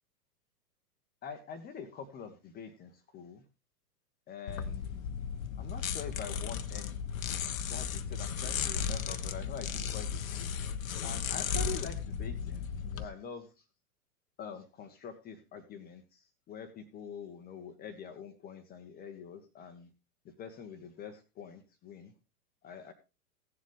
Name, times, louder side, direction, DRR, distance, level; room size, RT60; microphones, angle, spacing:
voice 1, 1.2-3.4 4.3-5.0 5.6-7.0 7.7-10.6 11.0-13.5 14.4-19.9 20.4-22.1 22.6-22.9, left 7 dB, 20° left, 6 dB, 1.0 m, -45 dB
sound 1, 4.5-13.0, left 7 dB, 60° left, 1.0 m, -35 dB
15.5 x 7.4 x 3.5 m, 0.29 s
figure-of-eight pair, 105°, 47 cm